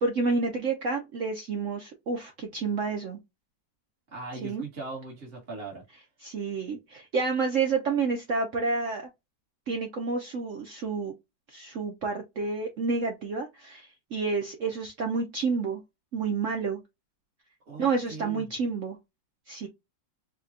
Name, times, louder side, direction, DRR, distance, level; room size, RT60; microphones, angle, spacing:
voice 1, 0.0-3.2 4.4-4.6 6.2-9.1 9.7-11.1 11.5-15.8 16.1-16.8 17.8-19.0 19.5-19.7, right 4 dB, 60° right, 0.9 m, -29 dB
voice 2, 4.1-5.8 17.7-18.5, right 3 dB, 35° right, 1.4 m, -39 dB
4.9 x 2.3 x 2.6 m
omnidirectional pair, 1.9 m